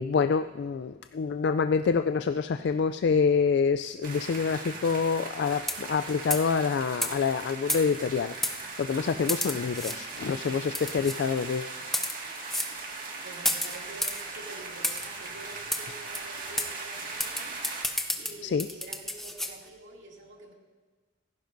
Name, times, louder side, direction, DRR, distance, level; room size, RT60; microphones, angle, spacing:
voice 1, 0.0-11.7 18.4-18.7, left 5 dB, 65° left, 10 dB, 0.3 m, -27 dB
sound 1, 4.0-17.8, right 3 dB, 50° right, 1.9 m, -39 dB
sound 2, 5.6-6.0 6.3-6.5 7.0-7.1 7.7-8.1 8.4-8.6 9.3-10.0 10.7-11.2 11.8-12.2 12.5-12.7 13.4-14.2 14.8-15.1 15.7-15.8 16.1-16.2 16.6-16.7 17.2-19.5, left 1 dB, ahead, 0.6 m, -31 dB
voice 2, 13.2-17.8 18.2-20.5, right 2 dB, 80° right, -1 dB, 2.5 m, -47 dB
17.0 x 15.0 x 2.6 m, 1.3 s
head